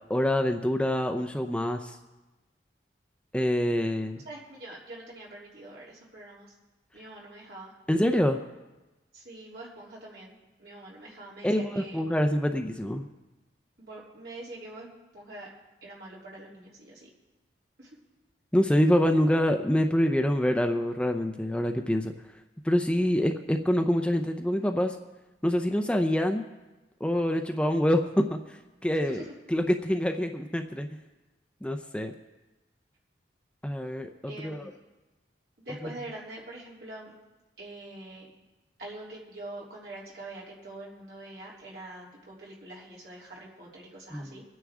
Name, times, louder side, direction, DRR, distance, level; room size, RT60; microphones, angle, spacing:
voice 1, 0.1-2.0 3.3-4.2 7.9-8.4 11.4-13.1 18.5-22.1 22.6-25.0 25.4-26.4 27.0-28.6 28.8-30.9 31.6-32.1 33.6-34.6 44.1-44.4, equal, 5° left, 5 dB, 0.5 m, -26 dB
voice 2, 4.3-6.5 6.9-7.7 9.1-12.0 13.8-14.9 15.1-15.5 15.8-17.1 17.8-18.0 29.1-29.3 34.3-34.8 35.7-37.1 37.6-38.3 38.8-44.4, right 2 dB, 60° right, -5 dB, 3.3 m, -44 dB
22.5 x 9.3 x 3.7 m, 1.1 s
head